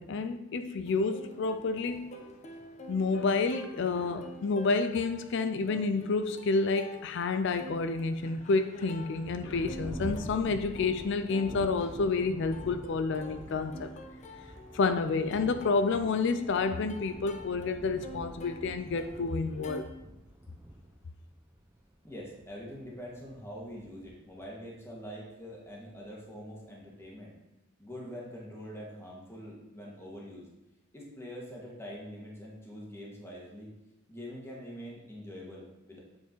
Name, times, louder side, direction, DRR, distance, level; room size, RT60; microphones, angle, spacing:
voice 1, 0.0-2.3 2.9-13.9 14.7-19.8, left 4 dB, 60° left, 9 dB, 0.4 m, -29 dB
Plucked string instrument, 0.9-19.8, left 1 dB, 35° left, 0.8 m, -48 dB
Thunder, 9.2-25.3 26.0-26.1 26.7-27.1, equal, 10° right, 0.6 m, -46 dB
voice 2, 22.0-27.3 27.8-30.5 30.9-33.8 34.1-36.0, equal, 10° left, -3 dB, 1.7 m, -44 dB
8.2 x 4.7 x 4.5 m, 0.92 s
head